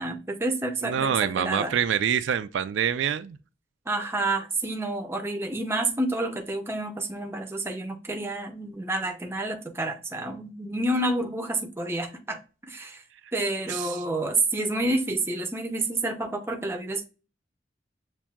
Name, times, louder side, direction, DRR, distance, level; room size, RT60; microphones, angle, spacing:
voice 1, 0.0-1.7 3.9-12.4 12.7-13.0 13.3-17.1, right 2 dB, 15° right, 0.5 m, -29 dB
voice 2, 0.8-3.4 13.7-14.0, right 8 dB, 75° right, 0.3 m, -26 dB
7.0 x 2.6 x 2.3 m
head